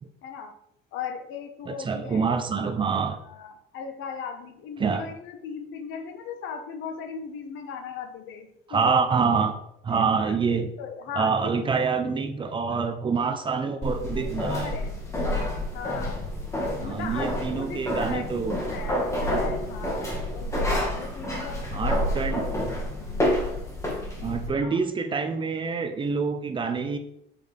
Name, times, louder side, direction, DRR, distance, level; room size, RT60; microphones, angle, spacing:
voice 1, 0.2-0.5 0.9-2.7 3.2-9.0 9.9-10.4 10.8-11.9 14.2-15.0 15.7-16.2 16.6-18.3 18.7-22.5 23.0-23.4 24.2-24.4 24.7-24.8, left 6 dB, 70° left, 6 dB, 1.2 m, -38 dB
voice 2, 1.7-3.2 4.8-5.1 8.7-9.5 9.8-10.7 11.2-14.7 16.8-18.6 21.7-22.4 24.2-27.0, right 5 dB, 25° right, 7 dB, 0.6 m, -26 dB
sound 1, 13.8-24.5, left 1 dB, 15° left, 1.8 m, -29 dB
7.9 x 7.5 x 3.4 m, 0.76 s
cardioid pair, 155°, 21 cm